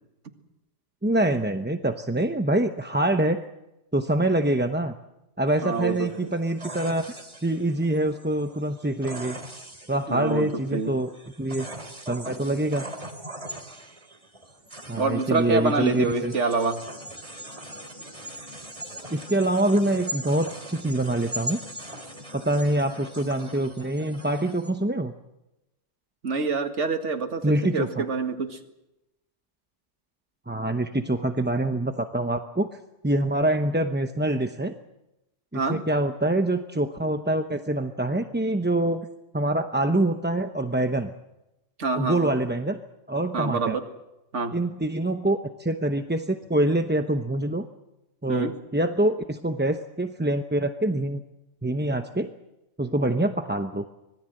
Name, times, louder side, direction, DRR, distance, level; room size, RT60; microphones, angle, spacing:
voice 1, 1.0-3.4 3.9-4.9 5.4-7.0 7.4-9.4 9.9-11.1 11.4-11.7 12.1-12.9 14.9-16.3 19.1-21.6 22.3-25.1 27.4-28.0 30.5-32.7 33.0-34.7 35.5-39.1 39.3-41.1 42.0-42.8 43.1-43.8 44.5-47.7 48.2-51.2 51.6-52.3 52.8-53.8, right 1 dB, 10° right, 6 dB, 0.7 m, -25 dB
sound 1, 5.5-24.7, right 1 dB, 25° right, 2.8 m, -40 dB
voice 2, 5.6-6.1 10.1-11.0 15.0-16.8 26.2-28.6 35.5-35.8 41.8-42.3 43.3-43.9 44.3-44.5 48.3-48.5, right 4 dB, 70° right, 6 dB, 2.2 m, -26 dB
25.0 x 19.5 x 7.7 m, 0.94 s
omnidirectional pair, 1.3 m